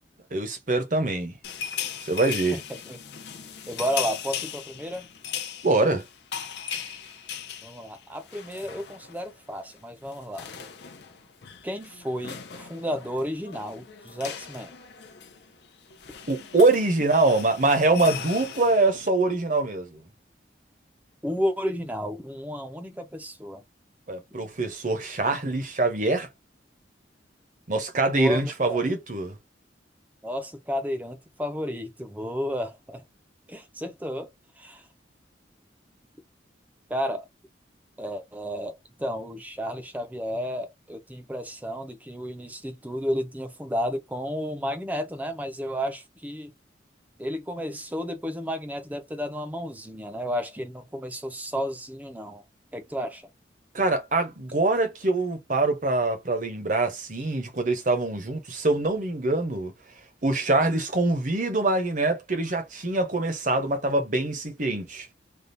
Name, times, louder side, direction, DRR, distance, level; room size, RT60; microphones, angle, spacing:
voice 1, 0.3-1.3 2.0-2.6 5.6-6.0 16.3-20.0 24.1-26.3 27.7-29.4 53.7-59.7 60.2-65.1, right 2 dB, 45° right, 0.9 m, -24 dB
sound 1, 1.4-9.3 9.6-9.8 10.0-19.1, left 8 dB, 70° left, 0.6 m, -38 dB
voice 2, 2.5-3.0 3.7-5.1 7.6-10.5 11.6-14.8 21.2-23.6 28.2-28.8 30.2-33.0 33.5-34.3 34.6-34.9 36.9-37.3 38.0-46.5 47.2-52.4 52.7-53.3, equal, 10° right, 0.6 m, -32 dB
3.5 x 2.3 x 2.6 m
head